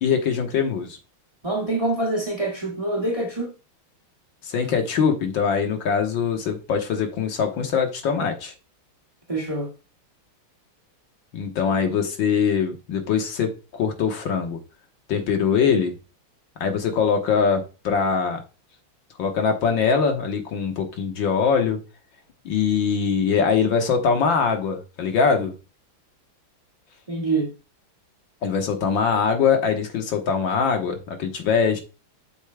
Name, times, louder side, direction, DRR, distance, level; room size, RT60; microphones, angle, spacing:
voice 1, 0.0-1.0 4.4-8.5 11.3-14.6 15.1-16.0 16.6-18.4 19.2-21.8 22.5-25.5 28.4-31.8, left 6 dB, 70° left, 1.9 m, -22 dB
voice 2, 1.4-3.5 9.3-9.7 27.1-27.5, right 2 dB, 15° right, 1.8 m, -25 dB
8.1 x 7.1 x 2.3 m
omnidirectional pair, 2.3 m